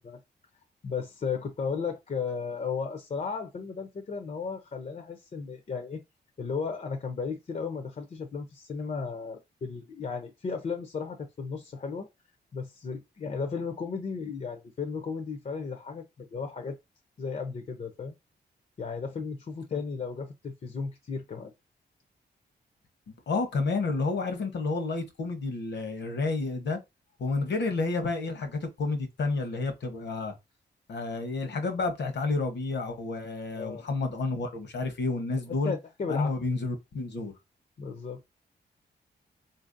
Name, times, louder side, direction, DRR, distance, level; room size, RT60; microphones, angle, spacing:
voice 1, 0.8-6.0 6.4-12.1 12.5-16.8 17.2-18.1 18.8-21.5 33.5-33.8 35.6-36.3 37.8-38.2, left 5 dB, 40° left, 0.6 m, -35 dB
voice 2, 23.3-26.8 27.2-30.3 30.9-35.7 36.1-37.3, left 3 dB, 75° left, 1.0 m, -30 dB
4.0 x 2.6 x 2.6 m
wide cardioid pair, 110°, 18 cm